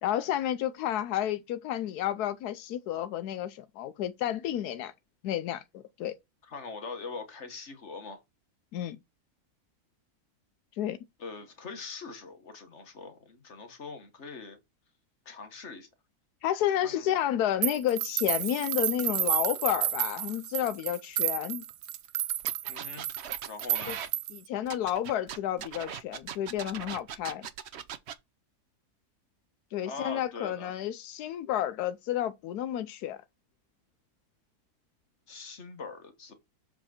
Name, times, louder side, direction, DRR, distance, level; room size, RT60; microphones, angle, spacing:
voice 1, 0.0-4.9 5.2-6.1 8.7-9.0 10.8-11.0 16.4-21.6 23.9-24.0 24.3-27.5 29.7-33.2, left 11 dB, 90° left, 1.2 m, -31 dB
voice 2, 6.5-8.2 11.2-14.6 15.3-15.9 16.8-17.0 22.7-23.1 23.5-24.0 29.8-30.7 35.3-36.3, left 4 dB, 50° left, 1.9 m, -42 dB
sound 1, 17.6-24.5, right 12 dB, 75° right, 1.1 m, -31 dB
sound 2, 22.4-24.1 24.7-28.1, right 9 dB, 55° right, 0.8 m, -40 dB
7.3 x 5.0 x 4.3 m
omnidirectional pair, 1.6 m